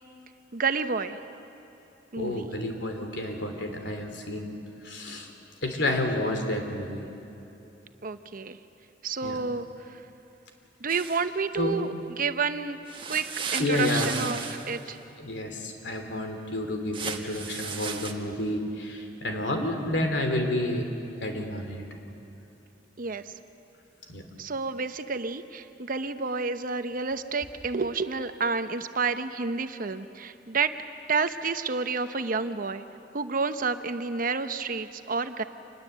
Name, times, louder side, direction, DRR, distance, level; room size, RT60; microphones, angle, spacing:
voice 1, 0.5-1.2 2.1-2.5 8.0-8.6 9.0-9.7 10.8-12.8 13.1-13.2 13.5-14.4 14.7-15.0 23.0-23.2 24.4-30.7 31.1-32.8 33.1-35.4, right 4 dB, 50° right, 10 dB, 0.9 m, -29 dB
voice 2, 2.1-4.5 4.8-5.3 5.6-7.0 9.2-9.4 11.6-11.8 13.6-14.6 15.2-20.8 21.2-21.8 24.1-24.2, left 1 dB, 70° left, 4 dB, 3.2 m, -30 dB
sound 1, 10.9-11.2 12.9-14.8 16.9-18.1, right 5 dB, 30° right, 1.6 m, -35 dB
27.0 x 21.0 x 8.2 m, 2.9 s
head